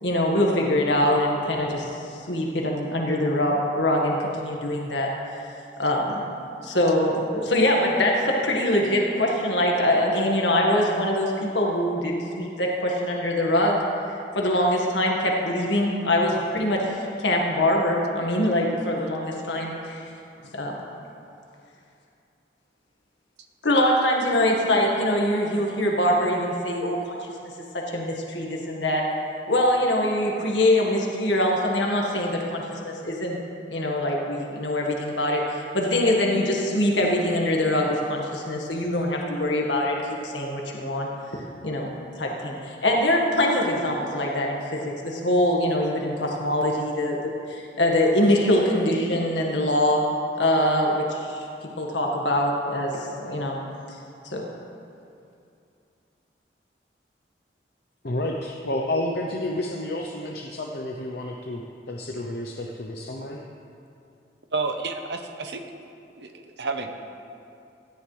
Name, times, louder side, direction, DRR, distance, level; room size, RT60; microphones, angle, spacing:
voice 1, 0.0-1.9 2.3-5.1 5.8-6.2 6.6-13.8 14.3-20.0 20.5-20.7 23.6-27.3 27.9-29.0 29.5-33.4 33.7-40.0 40.2-41.9 42.2-47.2 47.5-50.0 50.4-51.4 51.8-53.6 54.2-54.4, left 1 dB, 90° left, -2 dB, 1.8 m, -23 dB
voice 2, 58.0-61.6 61.9-63.4, left 1 dB, 60° left, 0 dB, 0.8 m, -30 dB
voice 3, 64.5-65.6 66.2-66.9, right 3 dB, 75° right, 5 dB, 1.1 m, -30 dB
17.5 x 13.5 x 3.4 m, 2.6 s
head